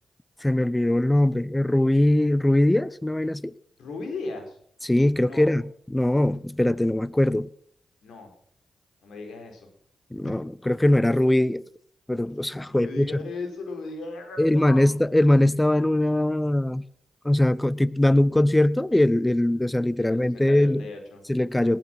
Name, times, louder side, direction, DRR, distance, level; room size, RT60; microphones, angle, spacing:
voice 1, 0.4-3.5 4.8-7.5 10.1-11.6 12.1-13.1 14.4-16.8 17.2-20.9 21.3-21.8, left 1 dB, 15° left, 0.8 m, -21 dB
voice 2, 3.8-4.6 5.2-5.5 8.0-8.3 9.0-9.7 10.2-10.3 12.6-14.8 20.0-21.2, left 3 dB, 80° left, 4.2 m, -37 dB
19.0 x 8.9 x 6.0 m
supercardioid pair, 40°, 0 cm